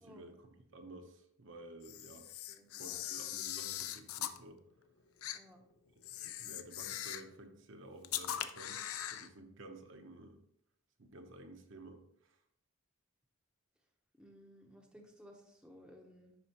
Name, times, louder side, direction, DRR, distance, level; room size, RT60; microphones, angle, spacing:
voice 1, 0.0-2.3 2.8-4.6 6.4-8.8 9.1-10.4 11.1-12.4, right 1 dB, 60° right, 4 dB, 0.8 m, -53 dB
Camera, 1.8-4.4 5.2-5.4 6.0-7.3 8.0-9.3, left 11 dB, 85° left, 0.5 m, -41 dB
voice 2, 2.5-3.0 5.3-5.6 14.2-16.3, equal, 5° right, 1 dB, 0.7 m, -58 dB
11.0 x 4.1 x 2.9 m, 0.71 s
head